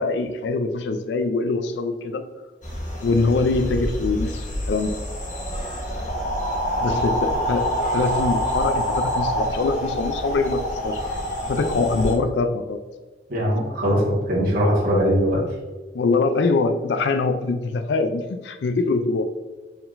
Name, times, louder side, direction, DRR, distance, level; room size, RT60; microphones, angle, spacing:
voice 1, 0.0-2.2 3.0-5.0 6.8-11.0 11.5-12.8 15.9-19.2, left 3 dB, 75° left, 8 dB, 0.4 m, -23 dB
sound 1, 2.6-12.2, equal, 45° left, 1.1 m, -26 dB
voice 2, 13.3-15.4, equal, 55° right, -4 dB, 1.4 m, -21 dB
4.6 x 3.7 x 2.5 m, 1.3 s
head